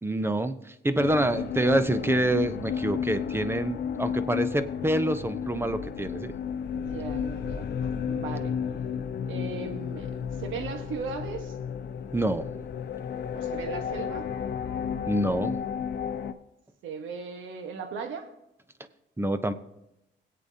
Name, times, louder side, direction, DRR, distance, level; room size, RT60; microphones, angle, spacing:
voice 1, 0.0-6.3 12.1-12.5 15.1-15.6 19.2-19.5, right 1 dB, 10° right, 11 dB, 0.7 m, -27 dB
sound 1, 1.0-16.3, left 7 dB, 55° left, 0.7 m, -32 dB
voice 2, 6.7-8.6 9.2-11.6 13.3-14.3 16.8-18.3, right 5 dB, 80° right, 6 dB, 1.4 m, -37 dB
21.5 x 8.4 x 2.8 m, 0.88 s
cardioid pair, 90°, 20 cm